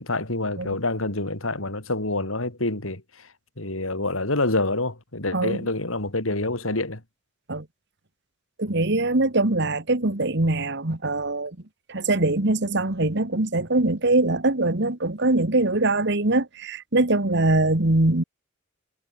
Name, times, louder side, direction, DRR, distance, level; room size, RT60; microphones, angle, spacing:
voice 1, 0.0-3.3 3.6-7.0, left 2 dB, 85° left, 4.2 m, -27 dB
voice 2, 5.3-5.7 7.5-7.7 8.6-11.6 11.9-18.2, right 2 dB, 60° right, 1.9 m, -22 dB
head